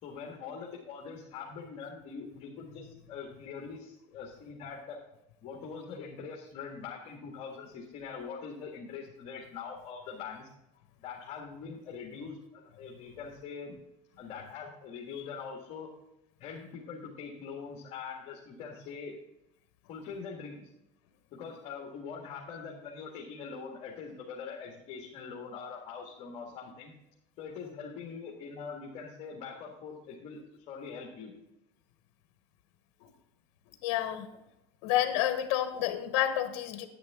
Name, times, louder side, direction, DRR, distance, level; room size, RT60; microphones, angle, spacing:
voice 1, 0.0-5.0 5.4-10.5 11.0-13.8 14.2-15.9 16.4-19.1 19.9-20.7 21.3-26.9 27.4-31.3, left 5 dB, 45° left, -1 dB, 1.8 m, -43 dB
voice 2, 33.8-34.3 34.8-36.9, left 12 dB, 70° left, 8 dB, 1.1 m, -29 dB
10.0 x 9.2 x 3.7 m, 0.90 s
supercardioid pair, 140°, 15 cm